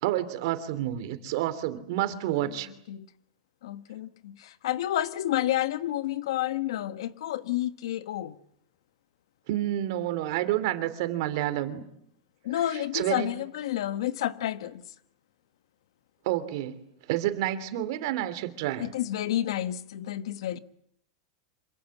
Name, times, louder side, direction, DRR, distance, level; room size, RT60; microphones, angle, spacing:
voice 1, 0.0-2.7 9.5-11.8 12.9-13.3 16.2-16.8 17.1-18.9, right 13 dB, 55° right, 2.8 m, -29 dB
voice 2, 3.6-8.4 12.4-14.8 18.8-20.6, left 13 dB, 80° left, 1.4 m, -30 dB
27.0 x 24.0 x 8.5 m
supercardioid pair, 170°, 3 cm